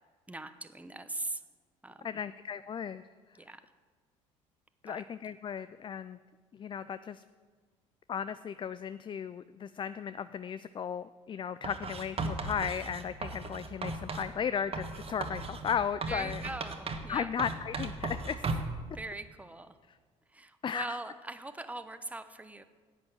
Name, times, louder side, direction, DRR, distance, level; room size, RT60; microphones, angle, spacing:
voice 1, 0.3-1.4 1.8-2.2 3.4-3.6 4.9-5.0 16.1-17.3 18.9-19.8 20.3-22.6, right 2 dB, 10° right, 11 dB, 0.8 m, -41 dB
voice 2, 2.0-3.0 4.8-6.2 6.5-7.2 8.1-16.4 17.1-18.6 20.6-21.0, left 7 dB, 30° left, 14 dB, 0.4 m, -35 dB
Writing, 11.6-14.3 14.7-17.1 17.4-18.8, right 3 dB, 35° right, 1.4 m, -36 dB
10.5 x 8.3 x 6.4 m, 1.5 s
hypercardioid pair, 60°, 16 cm